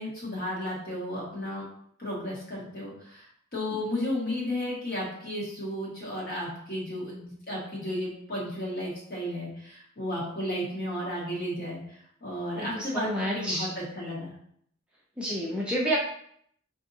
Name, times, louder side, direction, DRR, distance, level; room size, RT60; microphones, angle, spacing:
voice 1, 0.0-1.7 2.0-14.3, left 1 dB, 45° left, -4 dB, 1.3 m, -33 dB
voice 2, 12.6-13.7 15.2-16.0, right 1 dB, 5° right, -5 dB, 0.4 m, -29 dB
4.9 x 2.6 x 2.6 m, 0.66 s
head